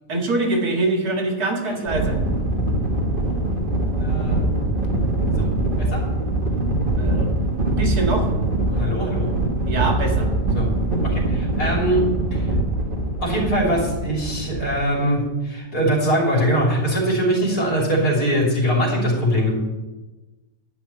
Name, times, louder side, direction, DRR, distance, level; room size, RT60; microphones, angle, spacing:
voice 1, 0.1-2.2 6.9-8.3 9.7-10.3, right 2 dB, 75° right, 1 dB, 2.4 m, -24 dB
sound 1, 1.9-15.2, right 2 dB, 35° right, 1.8 m, -23 dB
voice 2, 4.0-4.4 5.4-5.5 5.8-6.0 8.7-9.3 10.5-10.8 11.0-12.5 13.2-19.5, equal, 75° left, -3 dB, 4.0 m, -22 dB
11.5 x 6.1 x 8.6 m, 1.1 s
omnidirectional pair, 1.7 m